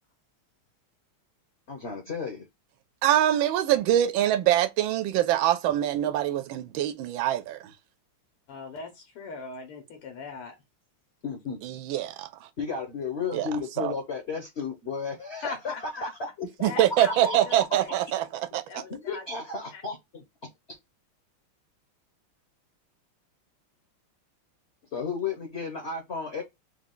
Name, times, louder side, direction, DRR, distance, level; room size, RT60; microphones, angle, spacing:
voice 1, 1.7-2.4 11.2-11.6 12.6-16.1 16.4-17.4 18.9-20.2 24.9-26.4, left 4 dB, 45° left, 0.8 m, -33 dB
voice 2, 3.0-7.6 11.6-12.3 13.3-13.5 13.8-13.9 16.6-18.8, right 12 dB, 75° right, 1.3 m, -24 dB
voice 3, 8.5-10.5 15.4-16.3 16.7-18.2 18.7-19.2 19.7-19.8, left 4 dB, 85° left, 2.0 m, -40 dB
4.6 x 2.4 x 3.7 m
omnidirectional pair, 2.4 m